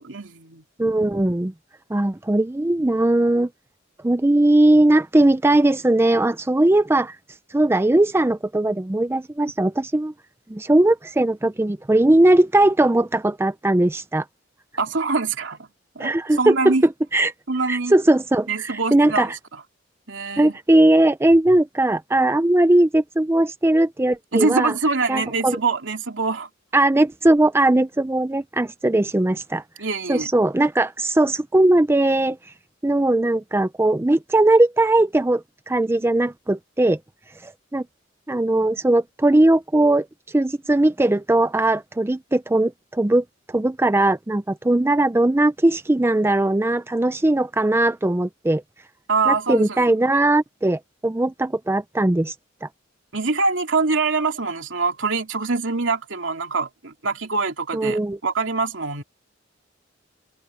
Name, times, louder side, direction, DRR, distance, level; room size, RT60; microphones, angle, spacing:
voice 1, 0.0-0.6 14.8-15.6 15.9-16.8 17.5-17.9 18.5-19.3 20.1-20.5 24.3-26.5 29.8-30.3 49.1-49.9 53.1-59.0, right 4 dB, 75° right, 2.8 m, -24 dB
voice 2, 0.8-1.5 1.9-3.5 4.0-7.2 7.5-10.1 10.5-14.2 16.0-16.7 17.1-17.3 17.7-19.4 20.4-24.7 25.1-25.6 26.7-29.6 30.1-32.4 32.8-37.0 37.4-37.8 38.3-40.1 40.3-48.6 49.3-52.3 52.6-52.7 57.7-58.2, right 1 dB, 15° right, 0.4 m, -19 dB
head